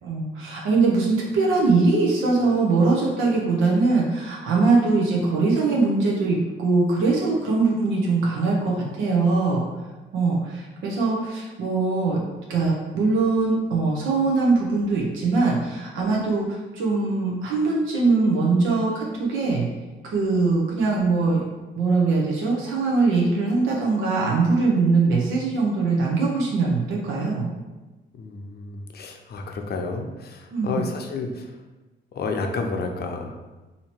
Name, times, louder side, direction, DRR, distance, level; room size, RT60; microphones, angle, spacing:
voice 1, 0.0-9.7 10.1-12.2 12.5-19.7 20.0-21.4 21.8-27.5 30.5-30.8, right 3 dB, 85° right, -3 dB, 0.8 m, -22 dB
voice 2, 28.2-31.5 32.1-33.3, left 3 dB, 55° left, 3 dB, 0.6 m, -30 dB
2.8 x 2.8 x 4.4 m, 1.2 s
cardioid pair, 90°, 20 cm